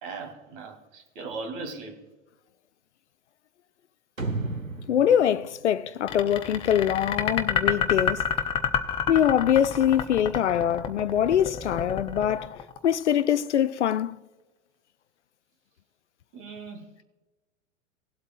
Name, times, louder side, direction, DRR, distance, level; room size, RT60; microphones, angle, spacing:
voice 1, 0.0-2.0 16.3-17.0, right 4 dB, 45° right, 2.4 m, -38 dB
sound 1, 4.2-6.7, right 3 dB, 90° right, 1.3 m, -34 dB
voice 2, 4.9-8.2 9.1-14.2, left 10 dB, 65° left, 0.5 m, -23 dB
sound 2, 6.1-13.2, left 8 dB, 15° left, 0.5 m, -28 dB
19.0 x 7.9 x 2.4 m
figure-of-eight pair, 100°, 39 cm